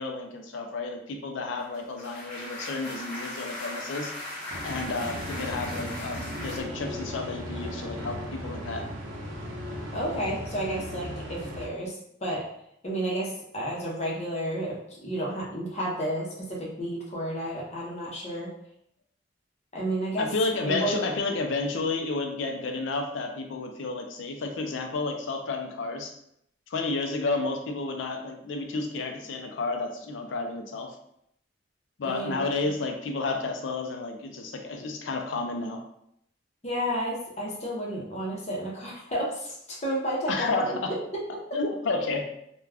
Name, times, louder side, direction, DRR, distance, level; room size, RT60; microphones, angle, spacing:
voice 1, 0.0-4.1 4.6-8.8 20.2-26.1 26.7-30.9 32.0-35.8 40.3-40.9 41.5-42.3, left 3 dB, 75° left, 3 dB, 0.4 m, -31 dB
sound 1, 1.6-6.6, left 1 dB, 10° left, 0.9 m, -38 dB
sound 2, 4.5-11.7, equal, 80° right, 0.5 m, -37 dB
voice 2, 9.9-12.0 12.2-12.5 12.8-18.5 19.7-20.3 20.6-21.0 32.0-32.4 36.6-41.0, right 1 dB, 35° left, -4 dB, 0.7 m, -31 dB
2.3 x 2.2 x 3.3 m, 0.74 s
head